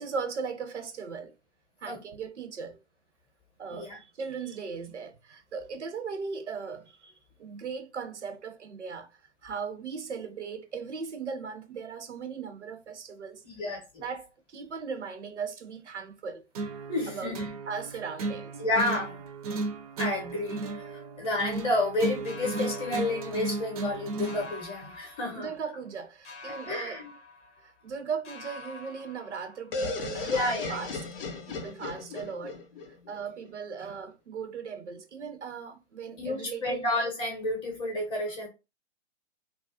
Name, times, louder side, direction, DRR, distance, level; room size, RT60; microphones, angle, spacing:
voice 1, 0.0-1.3 1.8-2.8 3.6-7.1 7.4-9.1 9.4-13.4 14.0-16.4 17.1-17.4 17.7-18.6 25.1-27.0 27.6-31.0 31.5-32.6 33.1-36.9, right 5 dB, 80° right, 0.6 m, -38 dB
voice 2, 13.4-14.0 16.9-17.5 18.6-19.2 20.0-25.5 26.7-27.1 30.2-30.8 31.3-31.5 36.2-38.5, left 2 dB, 15° left, 0.7 m, -31 dB
sound 1, 16.5-24.5, right 3 dB, 35° right, 0.4 m, -35 dB
sound 2, 22.2-24.0 24.2-25.9 26.2-28.0 28.2-29.9, left 2 dB, 85° left, 0.8 m, -47 dB
sound 3, 29.7-33.5, left 3 dB, 55° left, 0.6 m, -36 dB
2.3 x 2.0 x 2.6 m
figure-of-eight pair, 115°, 35 cm